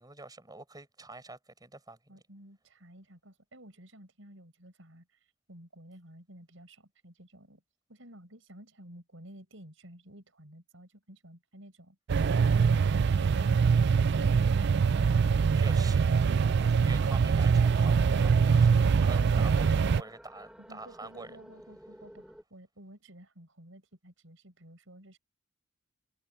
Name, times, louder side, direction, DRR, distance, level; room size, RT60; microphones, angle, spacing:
voice 1, 0.0-2.0 15.5-16.0 16.7-18.7 19.0-21.4, right 2 dB, 20° right, 7.6 m, -46 dB
voice 2, 2.1-5.2 5.5-7.6 7.9-12.0 20.6-25.2, right 1 dB, 75° right, 5.8 m, -53 dB
sound 1, 12.1-20.0, right 5 dB, 55° right, 0.4 m, -24 dB
sound 2, 16.9-22.4, equal, 5° right, 3.0 m, -52 dB
head